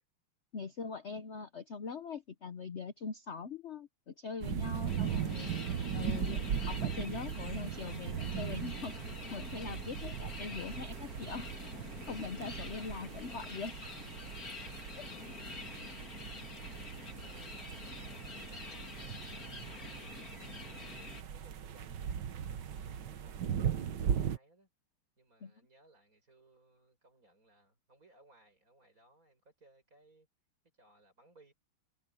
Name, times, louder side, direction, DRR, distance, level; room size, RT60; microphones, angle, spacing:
voice 1, 0.5-5.5 5.9-8.9 9.3-11.5 12.1-13.8 15.0-15.1 25.4-25.5, left 5 dB, 60° left, 0.7 m, -42 dB
sound 1, 4.4-24.4, right 8 dB, 60° right, 1.6 m, -39 dB
sound 2, 4.9-21.2, left 4 dB, 40° left, 2.9 m, -47 dB
voice 2, 16.7-20.2 20.7-24.7 25.2-30.3 30.8-31.5, right 2 dB, 40° right, 7.5 m, -66 dB
omnidirectional pair, 2.4 m